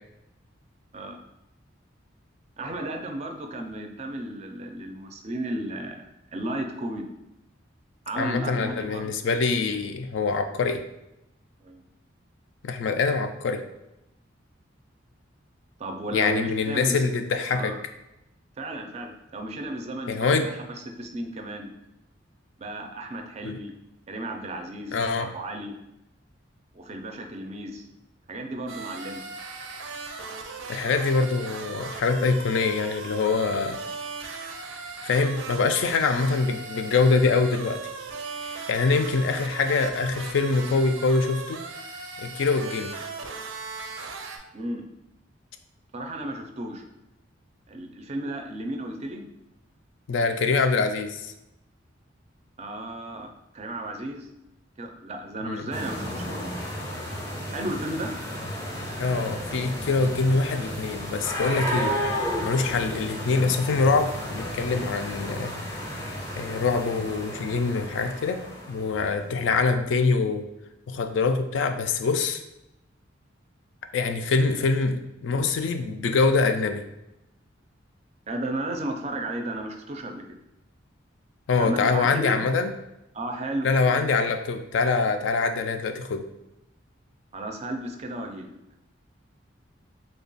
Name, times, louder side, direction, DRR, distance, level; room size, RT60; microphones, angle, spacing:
voice 1, 2.6-6.0 6.3-7.1 8.1-9.1 11.6-11.8 15.8-17.1 17.5-17.7 18.6-20.5 21.0-21.7 22.6-23.7 24.1-25.7 26.7-27.9 28.3-29.2 44.5-44.8 45.9-46.8 47.7-49.2 52.6-53.3 53.5-54.3 54.8-56.6 57.5-58.1 78.3-80.4 81.6-82.4 83.1-83.7 87.3-88.5, right 1 dB, 35° right, 4 dB, 0.4 m, -34 dB
voice 2, 8.2-10.8 12.6-13.6 16.1-17.8 20.1-20.5 23.4-23.6 24.9-25.3 30.7-33.8 35.0-37.8 38.4-41.6 42.2-43.0 50.1-51.3 55.4-55.6 59.0-62.0 62.4-68.4 68.7-70.5 70.9-72.4 73.9-76.8 81.5-82.7 83.6-86.3, left 4 dB, 70° left, 7 dB, 0.3 m, -24 dB
sound 1, 28.7-44.4, right 4 dB, 90° right, 0.5 m, -38 dB
sound 2, 55.7-69.2, equal, 15° left, 0.5 m, -33 dB
3.3 x 2.2 x 3.9 m, 0.90 s
head